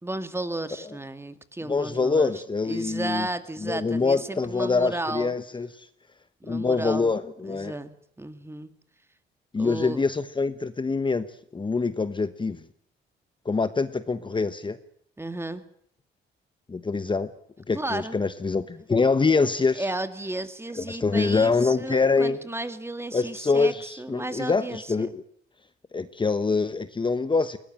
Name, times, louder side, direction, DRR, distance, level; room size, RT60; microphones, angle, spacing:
voice 1, 0.0-2.3 2.6-5.3 6.4-7.1 7.4-8.7 9.6-10.0 15.2-15.6 17.7-18.2 19.8-25.1, right 2 dB, 10° right, 10 dB, 2.3 m, -33 dB
voice 2, 1.7-3.3 3.6-5.9 6.5-7.7 9.5-11.3 11.5-12.6 13.4-14.8 16.7-17.3 17.7-19.9 20.7-22.4 23.1-25.2 25.9-27.6, left 4 dB, 25° left, 12 dB, 1.1 m, -25 dB
21.0 x 19.0 x 8.9 m, 0.67 s
cardioid pair, 90°, 20 cm